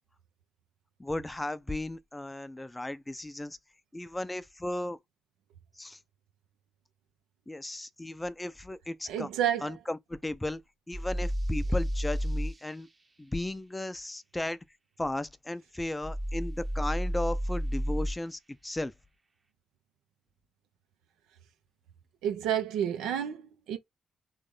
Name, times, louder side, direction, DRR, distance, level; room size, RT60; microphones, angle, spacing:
voice 1, 1.0-3.6 3.9-5.0 5.8-6.0 7.5-9.3 9.6-10.6 10.9-12.9 13.2-14.6 15.0-18.9, left 1 dB, 15° left, 0.6 m, -35 dB
voice 2, 9.1-9.7 22.2-23.8, right 10 dB, 75° right, 0.9 m, -30 dB
sound 1, 10.9-12.5 16.0-18.2, equal, 30° right, 1.1 m, -31 dB
3.5 x 3.3 x 3.8 m
hypercardioid pair, 45°, 0 cm